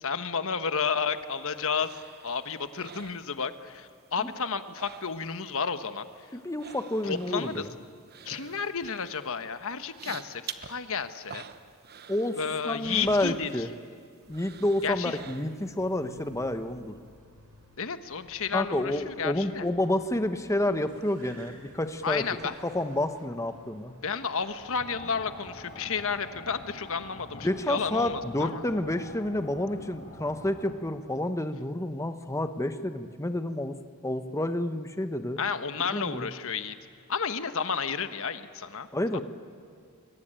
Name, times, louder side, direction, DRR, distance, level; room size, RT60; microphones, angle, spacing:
voice 1, 0.0-1.9 2.2-6.1 7.0-7.6 8.2-11.4 12.4-13.5 14.8-15.2 17.8-19.7 22.0-22.5 24.0-28.6 35.4-36.8 37.1-38.9, left 6 dB, 65° left, 10 dB, 1.3 m, -32 dB
sound 1, 0.9-3.9 4.2-5.5 5.8-13.9 14.3-15.8 16.2-16.3, right 7 dB, 45° right, 1.0 m, -48 dB
voice 2, 6.3-7.7 12.1-12.4 12.6-13.7 14.3-17.0 18.5-22.2 22.6-23.9 27.4-33.7 34.0-35.4 35.9-36.3 38.9-39.2, left 1 dB, 15° left, 9 dB, 1.1 m, -29 dB
Car, 14.2-31.0, equal, 70° right, 4.1 m, -56 dB
sound 2, 24.6-30.7, left 2 dB, 40° left, 4.1 m, -46 dB
28.5 x 22.0 x 9.0 m, 2.3 s
head